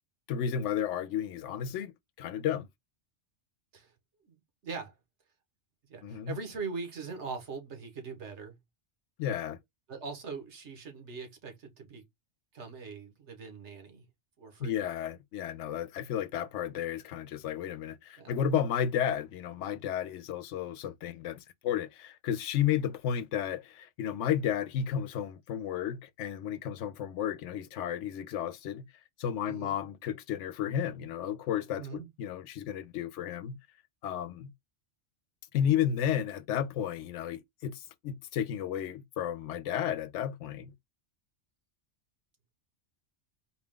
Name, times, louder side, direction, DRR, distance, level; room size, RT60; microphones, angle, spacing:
voice 1, 0.3-1.9 2.2-2.7 6.0-6.4 9.2-9.6 14.6-28.9 29.2-33.6 34.0-34.5 35.5-40.7, left 9 dB, 85° left, 0.9 m, -32 dB
voice 2, 4.6-4.9 5.9-8.6 9.9-12.0 12.5-14.1 14.4-14.8 18.2-18.3 29.4-29.8 31.8-32.1, right 5 dB, 75° right, 1.5 m, -41 dB
4.3 x 2.3 x 3.6 m
omnidirectional pair, 1.2 m